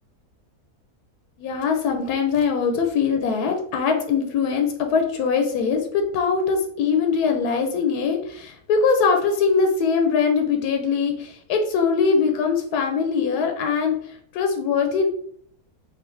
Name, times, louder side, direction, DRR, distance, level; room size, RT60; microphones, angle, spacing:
voice 1, 1.4-15.1, left 5 dB, 80° left, 4 dB, 1.1 m, -22 dB
3.6 x 2.6 x 3.1 m, 0.62 s
omnidirectional pair, 1.6 m